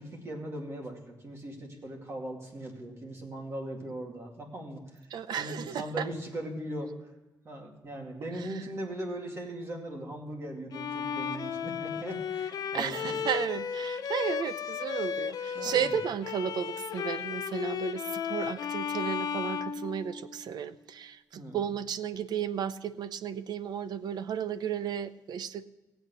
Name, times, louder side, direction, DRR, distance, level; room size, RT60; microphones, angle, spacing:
voice 1, 0.0-7.1 7.4-13.2 15.5-15.9 21.3-21.6, right 1 dB, 40° right, 0 dB, 2.4 m, -39 dB
voice 2, 5.1-6.1 8.4-8.6 12.7-25.6, right 8 dB, 85° right, 13 dB, 0.6 m, -34 dB
Bowed string instrument, 10.7-20.5, left 7 dB, 70° left, 0.6 m, -34 dB
17.0 x 8.1 x 6.2 m, 1.1 s
wide cardioid pair, 150°, 7 cm